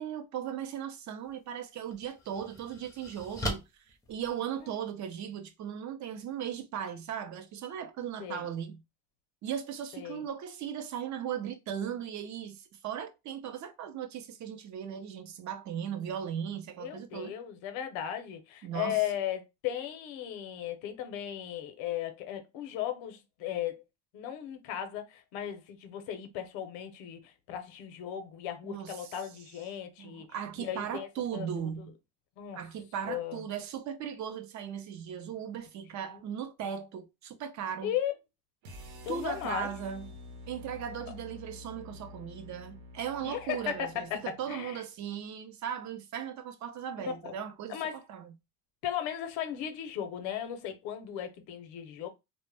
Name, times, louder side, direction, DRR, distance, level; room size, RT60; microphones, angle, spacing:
voice 1, 0.0-8.8 9.4-17.3 18.6-19.0 28.6-29.1 30.0-32.0 32.5-37.9 39.1-40.1 40.5-48.3, right 9 dB, 40° right, 0.5 m, -37 dB
sound 1, 1.2-1.3 1.9-4.9, left 1 dB, 10° left, 0.6 m, -40 dB
voice 2, 9.9-10.3 16.8-23.8 24.1-31.9 32.4-32.6 33.1-33.4 36.1-36.2 37.8-38.1 39.0-39.7 43.2-44.8 47.2-47.3 47.7-48.0 48.8-52.1, left 10 dB, 85° left, 0.7 m, -36 dB
sound 2, 38.6-44.8, left 2 dB, 75° right, 0.8 m, -48 dB
2.1 x 2.1 x 3.2 m
cardioid pair, 130°, 45 cm